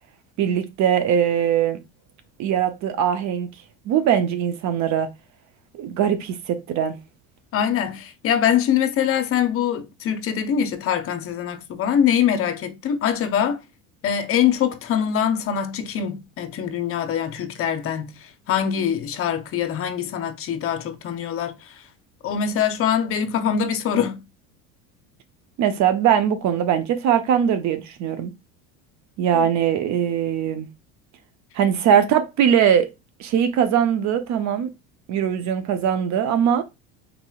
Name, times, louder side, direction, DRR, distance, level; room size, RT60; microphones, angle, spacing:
voice 1, 0.4-1.8 2.4-3.5 3.9-5.1 5.7-7.0 25.6-28.3 29.2-30.7 31.5-32.9 33.2-34.7 35.1-36.6, right 9 dB, 50° right, 0.6 m, -21 dB
voice 2, 7.5-13.6 14.0-21.7 22.2-24.2 29.3-29.5, left 8 dB, 40° left, 0.7 m, -23 dB
3.9 x 2.9 x 2.3 m
supercardioid pair, 100°, 36 cm